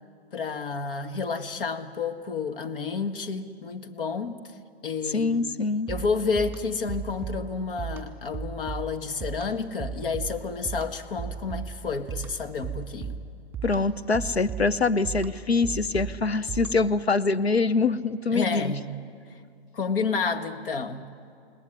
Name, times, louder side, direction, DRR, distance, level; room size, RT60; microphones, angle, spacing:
voice 1, 0.3-4.4 4.8-5.5 5.9-13.2 18.3-18.9 19.7-21.0, left 5 dB, 60° left, 7 dB, 2.0 m, -30 dB
voice 2, 5.1-5.9 13.6-18.7, left 3 dB, 85° left, 11 dB, 1.0 m, -24 dB
sound 1, 5.9-17.0, right 6 dB, 5° right, 2.8 m, -37 dB
29.5 x 19.0 x 9.9 m, 2.3 s
figure-of-eight pair, 120°, 31 cm